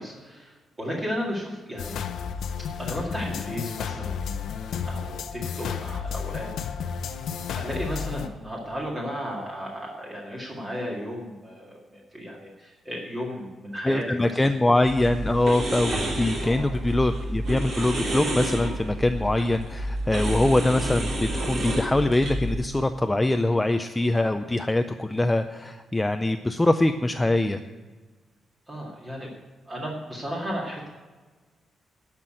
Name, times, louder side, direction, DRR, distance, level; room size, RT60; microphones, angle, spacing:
voice 1, 0.0-2.0 2.8-4.2 4.8-6.9 7.6-14.4 16.4-16.7 28.7-29.3 29.7-30.9, equal, 25° right, -3 dB, 2.1 m, -34 dB
sound 1, 1.8-8.3, left 7 dB, 80° left, 0.7 m, -32 dB
voice 2, 13.8-27.6, left 1 dB, 10° left, 7 dB, 0.4 m, -23 dB
sound 2, 14.8-22.5, right 1 dB, 55° right, 3.3 m, -29 dB
11.5 x 6.0 x 9.1 m, 1.3 s
cardioid pair, 140°, 0 cm